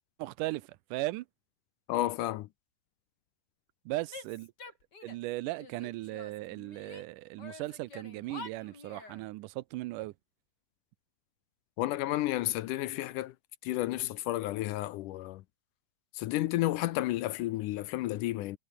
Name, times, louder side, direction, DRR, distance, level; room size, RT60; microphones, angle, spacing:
voice 1, 0.2-1.3 3.9-4.5 5.0-10.1, right 18 dB, 80° right, 2.1 m, -37 dB
voice 2, 1.9-2.5 11.8-13.3 13.6-15.4 16.1-18.6, left 16 dB, 75° left, 2.1 m, -31 dB
Female speech woman speaking / Yell, 4.1-5.3 5.6-7.1 7.4-9.2, left 4 dB, 30° left, 3.7 m, -48 dB
omnidirectional pair, 3.9 m